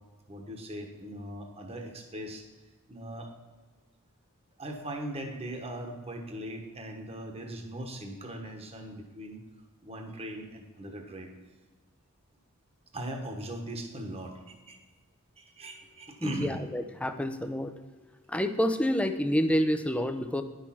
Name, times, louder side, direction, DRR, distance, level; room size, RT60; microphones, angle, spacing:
voice 1, 0.3-2.4 2.9-3.3 4.6-9.4 9.8-11.3 12.9-14.8 15.4-16.6, right 1 dB, 30° right, 3 dB, 1.2 m, -39 dB
voice 2, 16.2-17.7 18.3-20.4, equal, 5° left, 8 dB, 0.5 m, -28 dB
10.5 x 6.4 x 5.8 m, 1.3 s
head